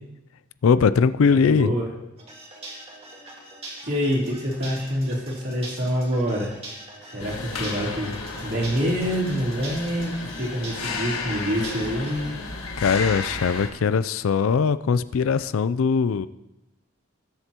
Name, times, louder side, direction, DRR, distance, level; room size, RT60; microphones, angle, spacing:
voice 1, 0.6-1.7 12.8-16.3, left 5 dB, 70° left, 15 dB, 0.4 m, -20 dB
voice 2, 1.3-1.9 3.8-6.5 7.0-12.4, equal, 55° right, -5 dB, 3.4 m, -26 dB
sound 1, 2.2-12.1, right 2 dB, 30° right, 2.0 m, -42 dB
sound 2, 7.2-13.7, left 3 dB, 90° left, 1.6 m, -33 dB
19.5 x 7.9 x 2.9 m, 0.95 s
head